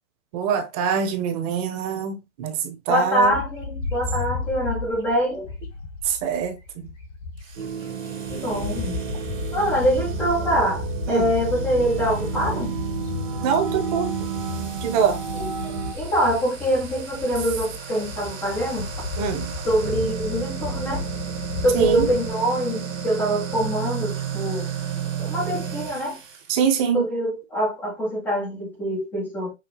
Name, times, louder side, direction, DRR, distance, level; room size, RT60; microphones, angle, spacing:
voice 1, 0.3-3.3 6.0-6.6 11.1-11.3 13.4-14.1 14.8-15.2 19.2-19.6 21.7-22.1 26.5-27.1, right 7 dB, 30° right, 0.8 m, -24 dB
voice 2, 2.9-5.5 8.3-9.0 9.5-12.7 15.3-18.9 19.6-21.0 21.6-24.7 25.2-26.2 26.9-29.5, equal, 5° left, 0.3 m, -24 dB
Bird, 3.2-7.7 8.1-22.3, left 4 dB, 80° left, 2.1 m, -34 dB
sound 1, 7.4-26.5, right 8 dB, 75° right, 1.7 m, -35 dB
sound 2, 7.6-15.9, right 6 dB, 55° right, 1.1 m, -31 dB
5.8 x 2.4 x 2.9 m
hypercardioid pair, 140°, 39 cm